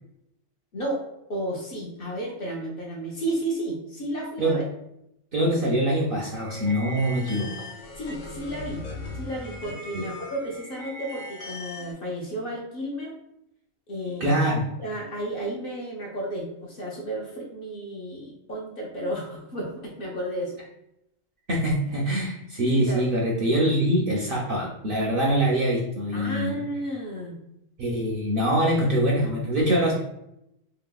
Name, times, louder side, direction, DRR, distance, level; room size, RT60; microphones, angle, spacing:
voice 1, 1.3-4.6 8.0-8.8 9.1-13.1 13.9-14.4 14.8-20.6 22.8-23.2 26.1-27.4, right 1 dB, 55° left, -3 dB, 0.7 m, -32 dB
voice 2, 5.3-7.5 9.9-10.1 14.2-14.6 21.5-26.6 27.8-29.9, right 1 dB, 60° right, -3 dB, 0.6 m, -24 dB
sound 1, 6.3-11.9, left 2 dB, 85° left, 1.1 m, -39 dB
2.8 x 2.8 x 2.2 m, 0.80 s
omnidirectional pair, 1.3 m